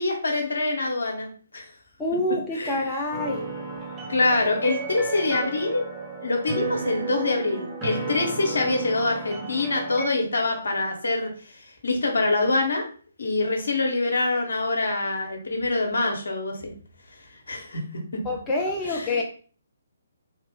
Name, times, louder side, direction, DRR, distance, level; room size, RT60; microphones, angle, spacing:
voice 1, 0.0-1.7 2.5-3.1 4.1-5.9 6.2-11.3 11.8-12.8 13.2-16.5 17.5-17.8 18.9-19.1, left 2 dB, 65° left, 2 dB, 1.0 m, -25 dB
voice 2, 2.0-3.4 18.2-19.2, left 2 dB, 10° left, -2 dB, 0.5 m, -26 dB
sound 1, 3.1-10.1, right 4 dB, 10° right, 1.1 m, -33 dB
3.0 x 2.4 x 3.6 m, 0.41 s
figure-of-eight pair, 135°, 0 cm